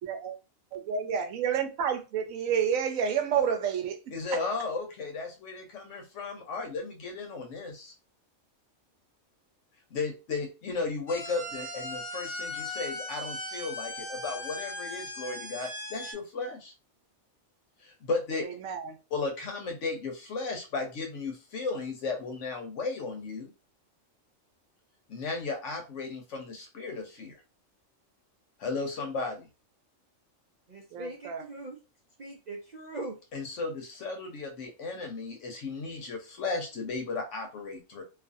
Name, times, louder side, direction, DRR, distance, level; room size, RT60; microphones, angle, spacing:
voice 1, 0.0-0.4 0.7-4.0 18.4-18.9 30.9-31.4, right 7 dB, 90° right, 1.0 m, -29 dB
voice 2, 4.1-7.9 9.9-16.7 17.8-18.6 19.1-23.5 25.1-27.4 28.6-29.5 33.3-38.0, left 3 dB, 70° left, 1.1 m, -35 dB
sound 1, 11.1-16.1, left 1 dB, 5° right, 0.9 m, -38 dB
voice 3, 30.7-31.8 32.2-33.2, right 2 dB, 55° right, 0.4 m, -40 dB
2.6 x 2.4 x 2.5 m
omnidirectional pair, 1.3 m